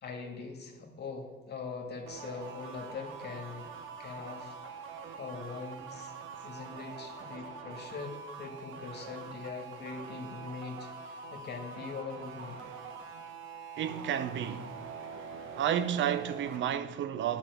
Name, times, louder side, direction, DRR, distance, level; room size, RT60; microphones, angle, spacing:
voice 1, 0.0-3.7 4.0-4.6 4.9-6.1 6.4-12.6, left 5 dB, 55° left, 1.9 m, -42 dB
sound 1, 2.1-16.7, right 5 dB, 85° right, 1.2 m, -45 dB
voice 2, 13.8-14.8 15.5-17.4, right 9 dB, 70° right, 0.7 m, -31 dB
10.0 x 5.6 x 8.4 m
cardioid pair, 90°, 20 cm